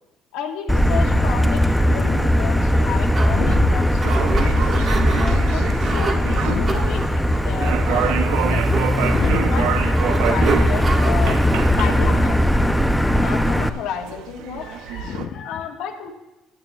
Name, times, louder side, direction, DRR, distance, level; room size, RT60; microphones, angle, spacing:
voice 1, 0.3-7.0 7.4-9.1 9.5-11.4 11.7-12.7 13.2-14.7 15.4-16.1, left 8 dB, 85° left, 2 dB, 1.7 m, -32 dB
Motor vehicle (road), 0.7-13.7, equal, 5° left, 0.7 m, -19 dB
voice 2, 1.8-2.1 3.3-3.8 6.4-6.8 9.1-9.5 12.0-12.1 14.6-15.7, left 8 dB, 60° left, 3 dB, 0.9 m, -30 dB
sound 1, 2.8-13.3, right 3 dB, 35° right, 1.7 m, -31 dB
sound 2, 3.9-15.3, right 10 dB, 85° right, 0.7 m, -29 dB
19.5 x 11.5 x 2.4 m, 1.0 s
cardioid pair, 90°, 0 cm